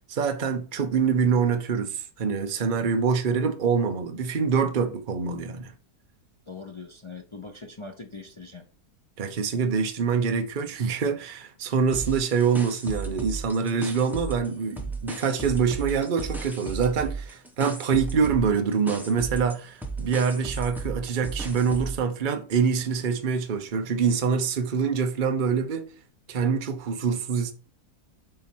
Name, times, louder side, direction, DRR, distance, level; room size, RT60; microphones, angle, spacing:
voice 1, 0.1-5.7 9.2-25.8 26.3-27.5, right 6 dB, 40° right, 0.8 m, -25 dB
voice 2, 6.5-8.7, left 4 dB, 40° left, 0.4 m, -41 dB
sound 1, 11.9-14.5 14.8-22.0, right 3 dB, ahead, 0.9 m, -35 dB
7.6 x 4.3 x 4.4 m
omnidirectional pair, 1.7 m